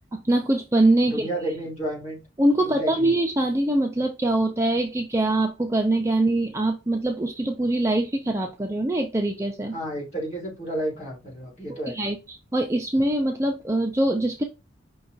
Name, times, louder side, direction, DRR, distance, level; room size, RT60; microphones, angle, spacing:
voice 1, 0.2-1.3 2.4-9.8 11.9-14.4, right 1 dB, 15° right, 3 dB, 0.5 m, -23 dB
voice 2, 1.1-2.2 2.6-3.1 9.7-12.0, right 1 dB, 35° left, -3 dB, 2.9 m, -31 dB
5.4 x 2.3 x 3.9 m, 0.27 s
head